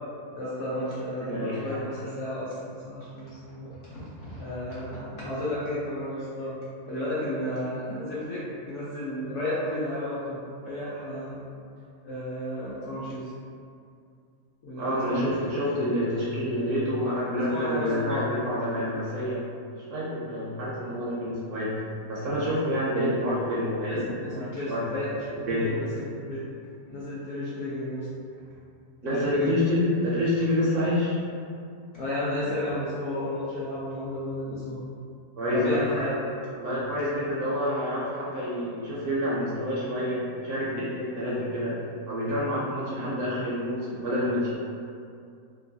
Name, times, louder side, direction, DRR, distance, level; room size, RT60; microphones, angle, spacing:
voice 1, 0.3-6.5 6.9-11.4 12.0-13.3 14.6-15.3 17.3-18.2 18.7-18.8 23.9-26.4 26.9-28.1 29.0-29.5 30.7-30.8 31.9-34.8 35.5-36.4, left 1 dB, 65° left, -9 dB, 0.8 m, -32 dB
voice 2, 1.2-1.8 14.8-19.4 19.7-24.0 24.2-24.8 25.5-25.7 29.0-31.2 35.4-35.8 36.6-41.8 42.1-44.5, left 1 dB, 65° right, -8 dB, 0.8 m, -28 dB
3.0 x 2.2 x 2.6 m, 2.4 s
omnidirectional pair, 1.7 m